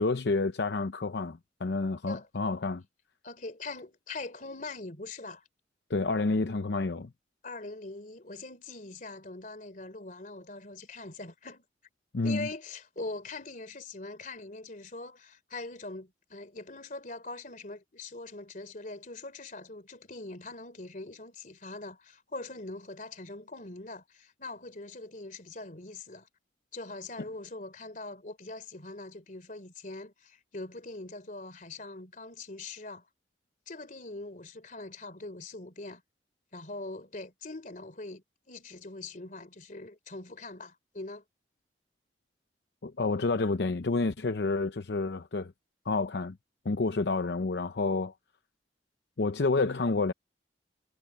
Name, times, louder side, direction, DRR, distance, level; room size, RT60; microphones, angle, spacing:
voice 1, 0.0-2.8 5.9-7.1 12.1-12.5 42.8-45.5 45.9-46.4 46.6-48.1 49.2-50.1, left 3 dB, 70° left, 0.7 m, -29 dB
voice 2, 3.2-5.4 7.4-11.6 12.2-26.3 26.7-33.0 33.7-36.0 36.5-41.2, left 2 dB, 45° left, 3.3 m, -42 dB
head